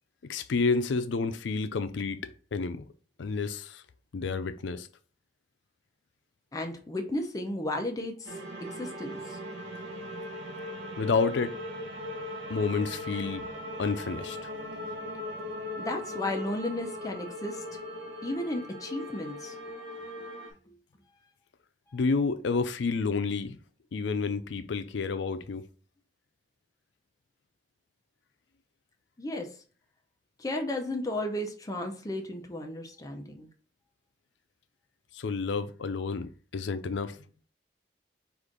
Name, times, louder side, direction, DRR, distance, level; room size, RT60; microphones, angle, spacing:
voice 1, 0.2-2.8 3.2-3.8 4.1-4.9 11.0-11.6 12.5-13.4 13.8-14.5 21.9-23.6 23.9-25.6 35.1-37.2, left 4 dB, 80° left, 0.5 m, -30 dB
voice 2, 6.5-8.3 8.6-9.4 15.8-17.6 18.2-19.5 29.2-29.5 30.4-33.5, left 1 dB, 20° left, 0.6 m, -34 dB
sound 1, 8.3-20.5, left 1 dB, 75° right, 0.9 m, -39 dB
4.9 x 2.5 x 3.8 m
head